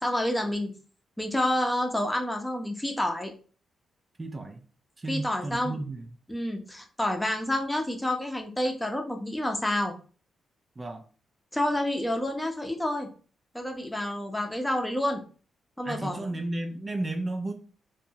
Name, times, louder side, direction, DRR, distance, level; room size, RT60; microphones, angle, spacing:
voice 1, 0.0-0.7 1.2-3.3 5.1-5.8 6.3-9.9 11.5-13.1 13.5-15.2 15.8-16.3, left 1 dB, 10° left, 3 dB, 0.7 m, -29 dB
voice 2, 4.2-4.6 5.0-6.1 10.8-11.0 15.8-17.5, right 2 dB, 35° right, 4 dB, 0.4 m, -33 dB
2.6 x 2.2 x 2.8 m, 0.38 s
hypercardioid pair, 45°, 0 cm